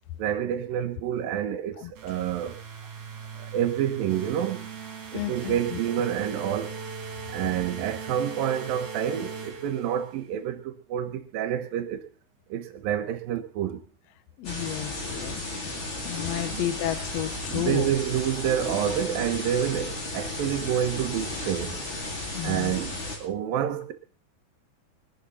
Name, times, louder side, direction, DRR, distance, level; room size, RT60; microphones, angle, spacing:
voice 1, 0.2-2.6 3.4-4.7 5.1-6.8 7.3-12.0 12.5-13.8 16.5-16.7 17.5-21.8 22.4-23.9, right 10 dB, 80° right, 2.8 m, -28 dB
sound 1, 2.0-10.3, right 5 dB, 60° right, 3.8 m, -39 dB
voice 2, 5.1-5.8 14.4-15.4 16.0-17.9 22.3-22.7, left 13 dB, 80° left, 1.4 m, -32 dB
sound 2, 14.4-23.2, left 2 dB, 35° left, 3.7 m, -34 dB
21.5 x 11.0 x 4.2 m
omnidirectional pair, 4.1 m